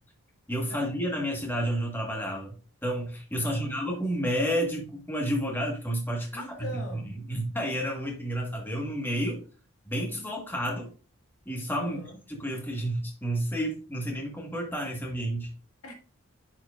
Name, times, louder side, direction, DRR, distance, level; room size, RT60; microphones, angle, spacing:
voice 1, 0.5-2.5 2.8-6.4 6.9-9.4 9.9-10.9 11.4-12.0 12.3-15.5, equal, 10° left, 1.3 m, -30 dB
voice 2, 3.4-4.0 6.3-7.1 11.8-12.2 15.8-15.9, left 1 dB, 85° left, 1.6 m, -42 dB
9.4 x 4.5 x 2.3 m
head